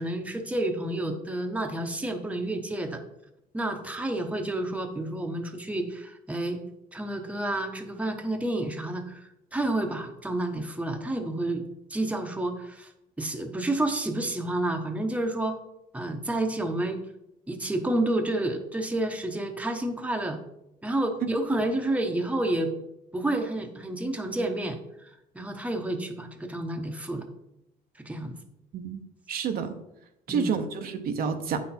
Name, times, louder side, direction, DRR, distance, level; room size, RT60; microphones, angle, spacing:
voice 1, 0.0-3.0 3.5-6.6 6.9-11.6 11.9-12.9 13.2-15.6 15.9-17.0 17.5-20.4 20.8-22.7 23.1-27.3 28.0-28.3 30.3-30.6, right 1 dB, 10° right, 4 dB, 1.0 m, -30 dB
voice 2, 29.3-29.7 30.3-31.6, right 6 dB, 60° right, 6 dB, 0.9 m, -29 dB
8.5 x 6.0 x 4.3 m, 0.86 s
cardioid pair, 110°, 17 cm